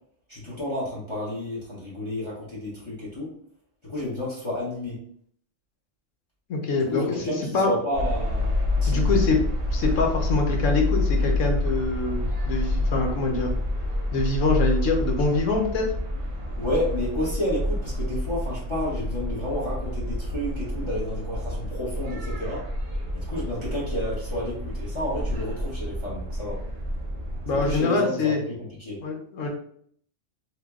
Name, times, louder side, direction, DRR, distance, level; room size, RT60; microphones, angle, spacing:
voice 1, 0.3-3.3 3.8-5.0 6.8-8.5 8.8-9.1 16.6-22.7 23.1-26.6 27.6-29.0, left 1 dB, 25° left, -7 dB, 0.9 m, -31 dB
voice 2, 6.5-7.7 8.9-9.4 9.7-13.5 14.1-15.9 27.4-28.4 29.0-29.5, left 3 dB, 75° left, 2 dB, 1.1 m, -24 dB
sound 1, 7.9-27.8, left 1 dB, 35° right, 0.5 m, -28 dB
3.0 x 2.1 x 3.5 m, 0.62 s
omnidirectional pair, 1.3 m